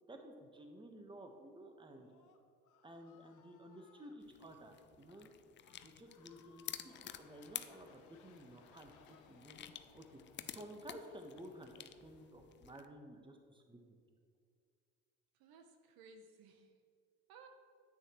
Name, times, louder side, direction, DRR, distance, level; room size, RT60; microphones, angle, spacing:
voice 1, 0.1-2.1 2.8-5.3 5.8-9.7 9.9-10.2 10.5-11.8 12.0-13.8, right 1 dB, 10° right, 4 dB, 1.1 m, -54 dB
Screaming, 1.8-4.2 4.9-5.3 5.6-7.7 8.2-9.6, left 7 dB, 50° left, 1.0 m, -69 dB
sound 1, 4.2-12.9, left 10 dB, 30° left, 0.4 m, -52 dB
sound 2, 6.9-12.3, left 5 dB, 80° left, 1.0 m, -67 dB
voice 2, 15.3-16.8 17.3-17.5, right 4 dB, 60° right, 5 dB, 0.9 m, -60 dB
9.6 x 8.3 x 3.1 m, 2.2 s
hypercardioid pair, 70°, 41 cm